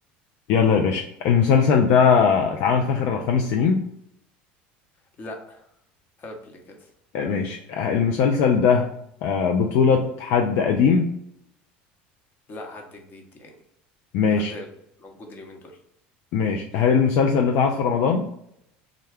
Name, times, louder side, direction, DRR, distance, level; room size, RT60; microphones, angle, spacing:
voice 1, 0.5-3.8 7.1-8.9 9.2-11.1 14.1-14.5 16.3-18.3, left 6 dB, 65° left, 3 dB, 0.4 m, -20 dB
voice 2, 5.2-5.7 6.2-6.9 12.5-13.6 14.3-14.7 15.0-15.8, left 2 dB, 40° left, 3 dB, 0.9 m, -40 dB
3.6 x 2.2 x 3.3 m, 0.74 s
hypercardioid pair, 90°, 5 cm